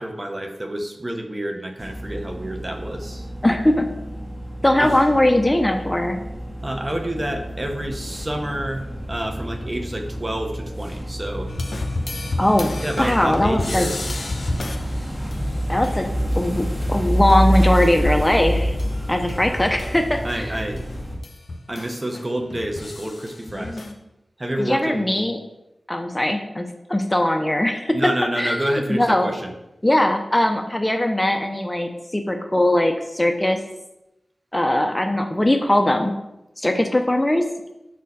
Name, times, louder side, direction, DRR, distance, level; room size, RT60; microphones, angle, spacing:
voice 1, 0.0-3.3 4.8-4.9 6.6-11.5 12.8-14.1 20.2-20.8 21.7-23.8 24.4-25.2 27.9-29.5, right 1 dB, 30° right, 4 dB, 0.9 m, -28 dB
sound 1, 1.8-21.2, equal, 10° right, 1.8 m, -28 dB
voice 2, 3.4-3.9 4.6-6.2 12.4-13.9 15.7-16.1 16.4-18.8 19.1-20.5 23.5-23.9 24.6-25.4 25.9-28.0 28.4-28.6 28.9-29.3 29.8-33.6 34.5-36.1 36.6-37.5, left 1 dB, 20° left, 5 dB, 0.6 m, -20 dB
sound 2, 11.5-19.0 19.3-23.9, left 2 dB, 75° left, 0.7 m, -33 dB
6.2 x 4.2 x 4.2 m, 0.92 s
cardioid pair, 50°, 0 cm